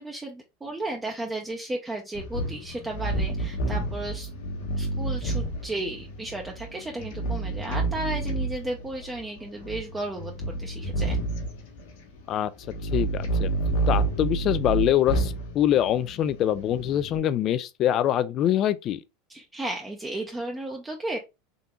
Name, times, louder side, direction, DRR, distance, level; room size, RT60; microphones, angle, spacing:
voice 1, 0.0-4.3 4.8-10.3 10.6-11.2 19.3-21.2, right 2 dB, 15° right, 0.6 m, -34 dB
sound 1, 2.1-17.2, right 2 dB, 75° left, 1.2 m, -30 dB
voice 2, 12.9-13.5 13.9-19.0, left 11 dB, 45° left, 0.4 m, -24 dB
3.7 x 2.8 x 2.3 m
hypercardioid pair, 105°, 0 cm